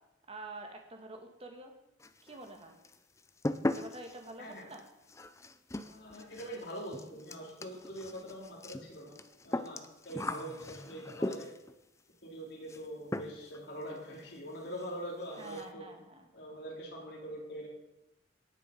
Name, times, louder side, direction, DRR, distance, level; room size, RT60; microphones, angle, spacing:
voice 1, 0.3-1.7 2.2-2.8 3.7-4.9 15.4-16.3, right 2 dB, 30° right, 3 dB, 1.8 m, -47 dB
sound 1, 2.0-2.6 2.8-11.7 12.7-12.9 13.1-13.6 13.9-14.0 14.4-14.5 14.7-14.9 15.2-15.7, left 1 dB, 15° left, 0.5 m, -39 dB
voice 2, 5.8-9.2 9.4-11.5 12.2-15.9 16.3-17.7, right 1 dB, 60° left, -4 dB, 4.0 m, -43 dB
18.0 x 6.9 x 5.3 m, 0.91 s
head